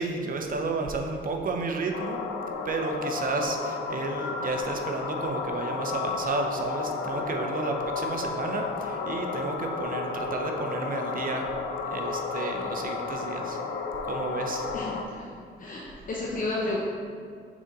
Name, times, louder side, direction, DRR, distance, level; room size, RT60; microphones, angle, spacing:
voice 1, 0.0-2.2 2.6-11.5 11.9-13.6 14.0-14.7, right 3 dB, 45° right, 3 dB, 0.8 m, -32 dB
sound 1, 1.9-15.0, left 4 dB, 90° left, 0.6 m, -32 dB
voice 2, 14.7-16.8, left 2 dB, 45° left, -4 dB, 0.9 m, -33 dB
6.1 x 4.0 x 4.1 m, 2.2 s
cardioid pair, 90°, 20 cm